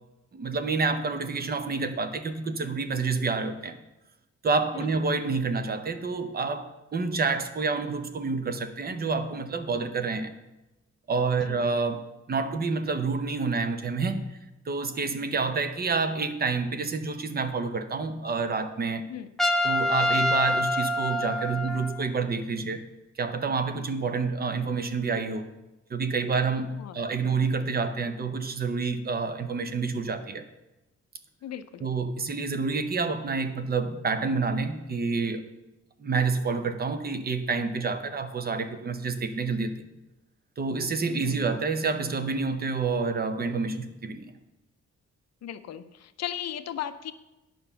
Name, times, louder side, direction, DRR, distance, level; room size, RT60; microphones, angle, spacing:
voice 1, 0.3-3.8 4.4-10.3 11.1-14.3 14.7-19.1 19.6-22.8 23.2-25.5 25.9-30.5 31.8-35.5 36.0-39.8 40.6-44.3, right 4 dB, 30° right, 9 dB, 0.7 m, -28 dB
Trumpet, 19.4-22.1, left 1 dB, ahead, 0.4 m, -26 dB
voice 2, 31.4-31.9 41.1-41.5 45.4-47.1, left 10 dB, 60° left, 11 dB, 0.6 m, -37 dB
9.3 x 5.9 x 6.8 m, 1.0 s
wide cardioid pair, 170°, 29 cm